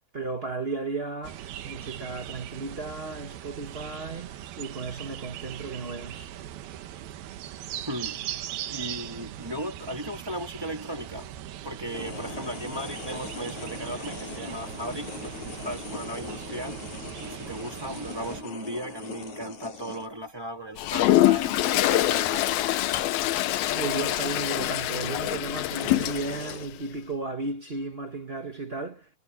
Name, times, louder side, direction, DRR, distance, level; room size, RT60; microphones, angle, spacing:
voice 1, 0.1-6.3 23.7-29.0, right 3 dB, 50° right, 0.7 m, -34 dB
sound 1, 1.2-18.4, right 11 dB, 90° right, 3.2 m, -40 dB
voice 2, 7.7-8.2 8.7-11.3 11.6-16.8 17.2-22.5, equal, 10° right, 1.8 m, -36 dB
sound 2, 11.9-20.1 20.8-21.1 21.4-23.6 24.7-24.8 25.5-26.7, left 3 dB, 50° left, 8.0 m, -40 dB
Toilet flush, 20.8-26.6, left 15 dB, 85° left, 2.8 m, -25 dB
omnidirectional pair, 4.2 m